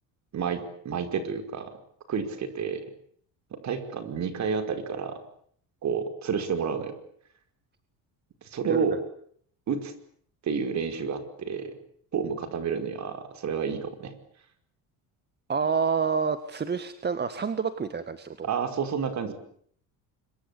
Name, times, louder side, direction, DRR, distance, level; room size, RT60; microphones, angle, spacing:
voice 1, 0.3-1.7 2.1-2.8 3.5-5.2 5.8-7.0 8.4-9.0 9.7-9.9 10.4-11.8 12.1-14.1 18.4-19.3, right 6 dB, 45° right, 8 dB, 5.2 m, -30 dB
voice 2, 15.5-18.5, right 6 dB, 25° right, 11 dB, 1.7 m, -28 dB
25.5 x 24.0 x 8.6 m, 0.62 s
cardioid pair, 120°, 37 cm